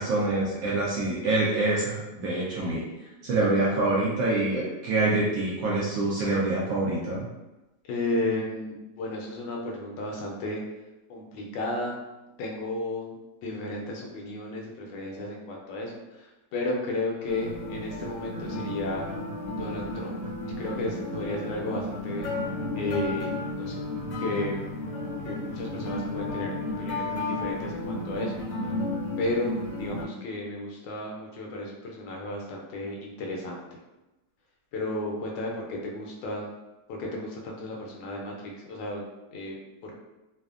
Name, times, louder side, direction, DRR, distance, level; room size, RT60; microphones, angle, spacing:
voice 1, 0.0-7.3, right 2 dB, 75° right, -5 dB, 0.8 m, -26 dB
voice 2, 7.9-10.6 11.1-11.9 12.4-19.0 19.6-20.2 20.6-22.3 22.8-23.3 23.6-23.8 24.2-24.6 25.2-28.4 29.2-33.8 34.7-36.5 36.9-38.3 38.7-39.1 39.3-39.6 39.8-39.9, left 2 dB, 75° left, -1 dB, 1.2 m, -33 dB
sound 1, 17.3-30.0, left 2 dB, 60° left, 0.9 m, -33 dB
3.2 x 2.1 x 2.4 m, 1.0 s
omnidirectional pair, 2.0 m